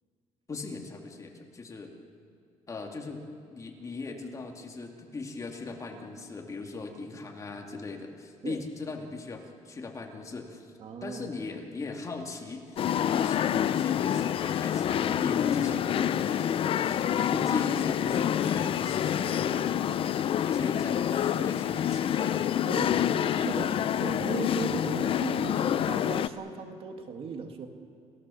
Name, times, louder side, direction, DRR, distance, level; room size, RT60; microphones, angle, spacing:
voice 1, 0.5-1.9 2.7-10.7 11.0-19.9 20.4-22.5, left 3 dB, 30° left, 2 dB, 2.4 m, -38 dB
voice 2, 10.8-11.2 22.7-23.0 23.3-27.7, right 5 dB, 55° right, 5 dB, 2.1 m, -37 dB
sound 1, 12.8-26.3, left 10 dB, 50° left, 0.7 m, -27 dB
29.5 x 17.5 x 7.1 m, 2.3 s
cardioid pair, 125°, 12 cm